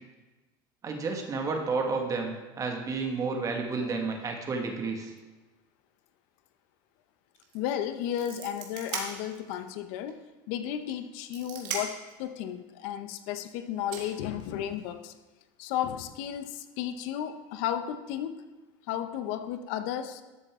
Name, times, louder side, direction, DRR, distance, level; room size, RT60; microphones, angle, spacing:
voice 1, 0.8-5.1, right 4 dB, 30° right, 2 dB, 1.8 m, -31 dB
sound 1, 7.4-7.6 7.9-9.6 10.1-10.2 10.9-12.1 13.3-13.4 13.9-14.9, right 6 dB, 80° right, 2.0 m, -38 dB
voice 2, 7.5-10.2 10.5-15.1 15.6-18.4 18.9-20.2, left 10 dB, 70° left, 10 dB, 0.8 m, -33 dB
12.5 x 6.8 x 3.7 m, 1.2 s
supercardioid pair, 110°, 11 cm